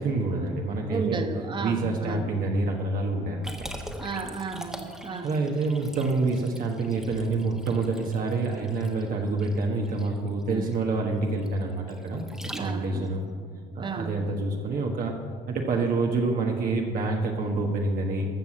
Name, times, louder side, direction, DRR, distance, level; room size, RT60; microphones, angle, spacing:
voice 1, 0.0-1.2 1.6-3.6 5.2-13.2 13.7-15.1 15.5-18.3, right 3 dB, 55° right, 0 dB, 1.4 m, -27 dB
voice 2, 0.9-2.3 4.0-5.3 10.5-10.7 12.5-13.2 13.8-14.3, right 4 dB, 30° right, 7 dB, 1.0 m, -33 dB
Liquid, 3.4-13.1, equal, 5° right, 1.3 m, -43 dB
13.5 x 6.2 x 7.5 m, 2.1 s
cardioid pair, 110°, 17 cm